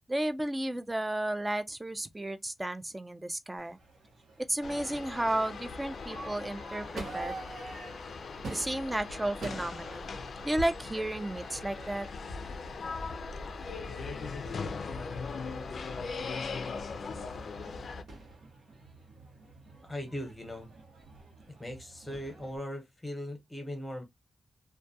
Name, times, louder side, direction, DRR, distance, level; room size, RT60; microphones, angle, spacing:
voice 1, 0.1-3.8 4.5-7.4 8.5-10.2 10.4-12.1, right 1 dB, 15° right, 0.3 m, -33 dB
Crowd / Fireworks, 3.6-22.6, right 2 dB, 80° right, 0.8 m, -48 dB
sound 1, 4.6-18.0, left 4 dB, 65° left, 0.3 m, -39 dB
voice 2, 19.8-20.7 21.6-24.0, left 1 dB, 10° left, 0.9 m, -39 dB
2.2 x 2.2 x 2.6 m
wide cardioid pair, 150°, 0 cm